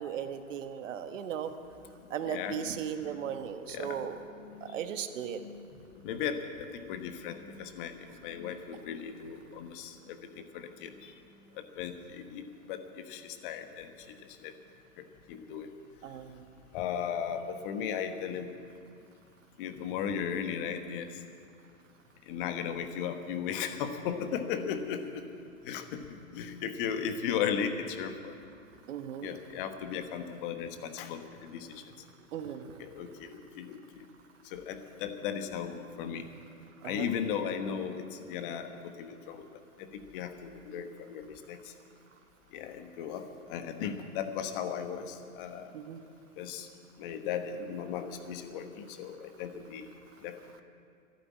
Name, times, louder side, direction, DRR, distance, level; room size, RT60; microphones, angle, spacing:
voice 1, 0.0-1.5 2.1-4.2 4.6-5.4 16.0-16.4 28.9-29.3 32.3-32.8 33.2-33.3 36.8-37.1 45.7-46.0, right 8 dB, 60° right, 9 dB, 1.3 m, -37 dB
voice 2, 2.2-4.8 5.3-5.7 6.0-11.1 11.8-13.9 14.4-14.5 15.3-15.7 16.7-18.5 19.6-21.1 22.3-25.2 25.6-28.3 29.2-31.8 32.8-33.8 34.5-36.3 36.8-39.5 39.8-41.6 42.5-45.7 46.4-46.7 47.0-49.9 50.2-50.6, left 7 dB, 40° left, 8 dB, 1.3 m, -36 dB
14.0 x 11.5 x 8.4 m, 2.4 s
hypercardioid pair, 135°, 42 cm